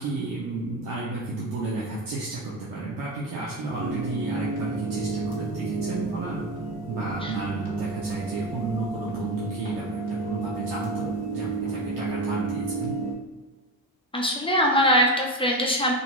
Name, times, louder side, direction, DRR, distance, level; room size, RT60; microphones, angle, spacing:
voice 1, 0.0-6.4 6.9-12.9, right 2 dB, 85° right, -6 dB, 0.6 m, -32 dB
sound 1, 3.7-13.1, right 3 dB, 25° right, 1.3 m, -31 dB
voice 2, 14.1-15.9, equal, 15° left, 0 dB, 0.5 m, -22 dB
2.5 x 2.3 x 2.9 m, 1.2 s
cardioid pair, 65°, 36 cm